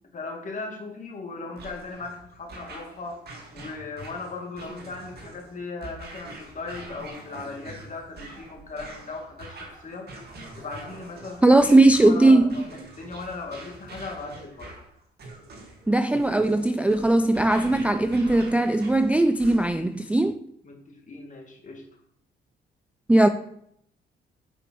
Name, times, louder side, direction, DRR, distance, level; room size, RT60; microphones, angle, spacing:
voice 1, 0.1-3.2 3.5-10.1 10.6-11.6 12.0-12.7 13.0-14.7 20.6-21.8 23.2-23.3, left 3 dB, 40° left, 2.0 m, -38 dB
sound 1, 1.6-19.9, right 2 dB, 55° right, 2.0 m, -44 dB
voice 2, 11.4-12.5 15.9-20.4 23.1-23.3, right 2 dB, 5° right, 0.3 m, -19 dB
8.2 x 5.1 x 4.6 m
cardioid pair, 90°, 20 cm